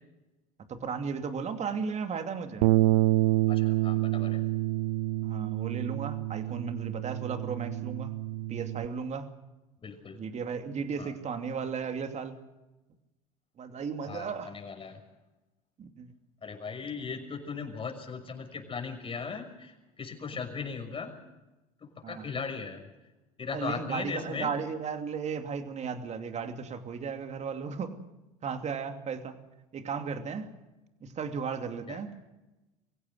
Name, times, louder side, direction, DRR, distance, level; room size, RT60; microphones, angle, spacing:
voice 1, 0.7-2.7 5.2-8.1 8.5-9.3 10.1-12.4 13.6-14.5 15.8-16.1 22.0-22.2 23.5-27.9 28.4-29.4 29.7-30.5 31.0-32.1, right 6 dB, 35° right, 7 dB, 2.7 m, -35 dB
Bass guitar, 2.6-8.9, right 16 dB, 70° right, 0.7 m, -28 dB
voice 2, 3.5-4.4 9.8-10.2 11.0-11.1 14.1-15.0 16.4-21.1 21.8-22.9 23.4-24.5 31.9-32.0, left 5 dB, 30° left, 4 dB, 6.0 m, -38 dB
24.5 x 16.0 x 8.0 m, 1.0 s
hypercardioid pair, 75°, 19 cm